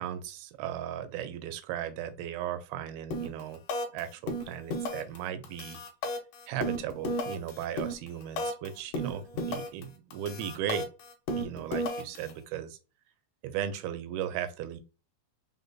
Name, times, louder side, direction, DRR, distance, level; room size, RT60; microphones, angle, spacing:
voice 1, 0.0-3.6 3.9-5.8 6.5-10.9 11.3-12.7 13.4-14.8, right 10 dB, 85° right, 10 dB, 2.6 m, -36 dB
sound 1, 3.1-3.4 3.7-4.0 4.3-5.2 5.4-8.7 8.9-9.8 10.1-12.3, equal, 70° left, 2.2 m, -33 dB
5.6 x 3.9 x 2.3 m, 0.31 s
omnidirectional pair, 4.5 m